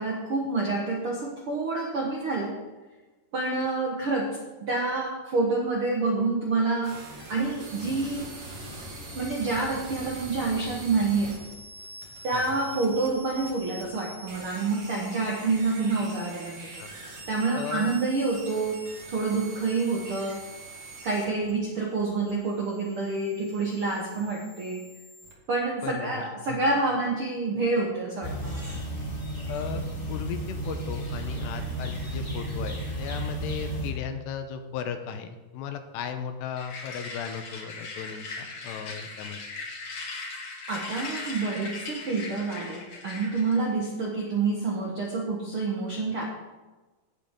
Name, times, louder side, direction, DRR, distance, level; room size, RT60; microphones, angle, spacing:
voice 1, 0.0-2.5 3.3-8.3 9.1-11.4 12.2-16.8 17.3-18.8 19.1-20.4 21.0-24.9 25.5-28.7 40.7-46.3, right 3 dB, 75° right, -1 dB, 1.2 m, -28 dB
sound 1, 6.8-25.3, right 2 dB, 40° right, 3.3 m, -43 dB
voice 2, 17.6-17.9 25.8-26.2 26.5-26.6 29.5-29.8 30.1-39.4, left 7 dB, 85° left, 7 dB, 3.0 m, -36 dB
sound 2, 28.2-33.9, right 1 dB, 20° left, 2.5 m, -33 dB
sound 3, 36.6-43.7, left 3 dB, 50° left, 2.7 m, -39 dB
17.5 x 7.7 x 3.8 m, 1.2 s
omnidirectional pair, 4.9 m